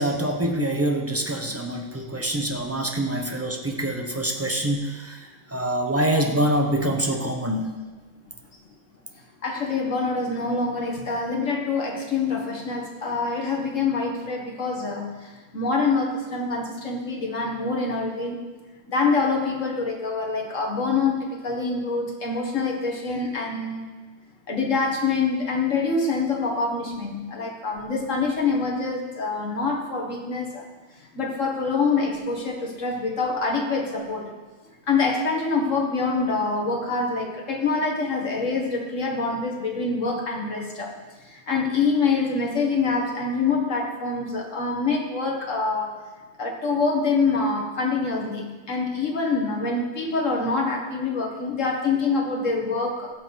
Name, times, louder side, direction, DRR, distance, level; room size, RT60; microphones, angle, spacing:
voice 1, 0.0-5.2 5.5-7.7, right 1 dB, 10° right, 2 dB, 1.0 m, -25 dB
voice 2, 9.4-15.1 15.5-18.4 18.9-23.9 24.5-30.6 31.1-34.3 34.9-40.9 41.3-46.0 46.4-53.1, left 4 dB, 65° left, 0 dB, 2.0 m, -25 dB
16.0 x 6.9 x 4.1 m, 1.3 s
omnidirectional pair, 1.4 m